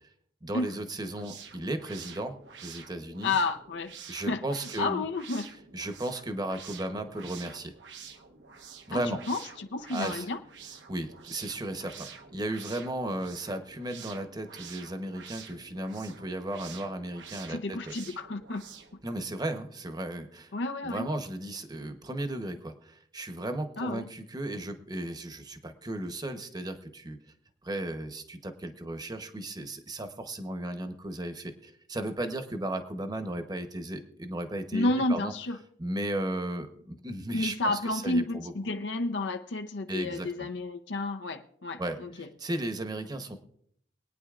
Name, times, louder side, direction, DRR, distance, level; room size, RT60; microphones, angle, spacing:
voice 1, 0.4-2.3 2.6-3.3 4.1-5.1 5.7-7.6 8.9-9.2 9.9-10.2 10.9-11.9 12.3-17.8 19.0-20.2 20.8-22.6 23.1-25.4 25.8-26.7 27.1-27.2 27.7-28.2 28.6-31.3 31.9-35.3 35.8-36.7 37.0-38.5 39.9-40.3 41.8-42.0 42.4-43.4, right 1 dB, 25° right, 8 dB, 0.9 m, -34 dB
sound 1, 1.0-19.0, right 6 dB, 85° right, 1.0 m, -48 dB
voice 2, 3.2-3.9 4.3-4.4 4.8-5.5 8.9-10.4 17.5-18.7 20.5-21.1 23.8-24.1 34.7-35.6 37.3-42.3, left 2 dB, 80° left, 7 dB, 0.6 m, -31 dB
23.0 x 9.2 x 2.4 m, 0.67 s
head